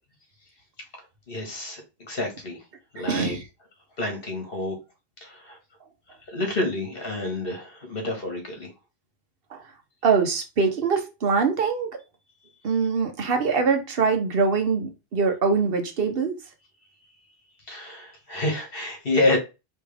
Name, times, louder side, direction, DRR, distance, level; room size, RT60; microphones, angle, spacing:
voice 1, 1.3-2.6 2.9-3.4 4.0-4.8 5.2-5.6 6.3-8.7 17.7-19.4, left 2 dB, 60° left, 1.7 m, -28 dB
voice 2, 3.0-3.4 9.5-9.6 10.0-11.9 12.6-16.4, right 5 dB, 65° right, 1.1 m, -23 dB
4.7 x 3.1 x 3.4 m
omnidirectional pair, 1.1 m